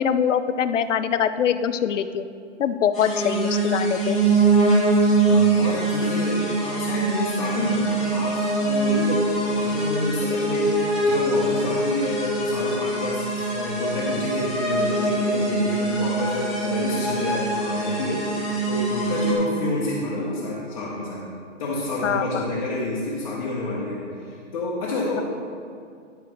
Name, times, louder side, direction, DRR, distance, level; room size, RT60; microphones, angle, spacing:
voice 1, 0.0-2.2 2.6-4.2 22.0-22.4, left 8 dB, 75° left, 11 dB, 0.6 m, -23 dB
sound 1, 2.9-19.3, right 2 dB, ahead, 1.1 m, -23 dB
voice 2, 5.2-21.3 21.6-24.0 24.3-25.2, left 2 dB, 30° left, -7 dB, 1.0 m, -29 dB
11.0 x 4.8 x 4.5 m, 2.3 s
hypercardioid pair, 170°, 37 cm